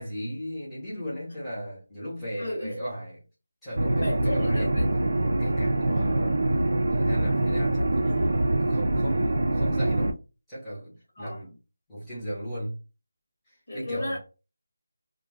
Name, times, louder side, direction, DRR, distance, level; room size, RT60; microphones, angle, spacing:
voice 1, 0.0-3.2 3.6-5.0 5.4-6.4 6.9-10.1 10.5-11.5 11.9-12.8 13.5-14.2, equal, ahead, 0.8 m, -36 dB
voice 2, 2.4-2.8 3.9-4.9 5.8-6.0 11.2-11.4 13.7-14.2, left 1 dB, 35° left, 1.0 m, -33 dB
sound 1, 3.8-10.1, right 1 dB, 65° right, 0.4 m, -24 dB
2.2 x 2.2 x 3.0 m
figure-of-eight pair, 180°, 0 cm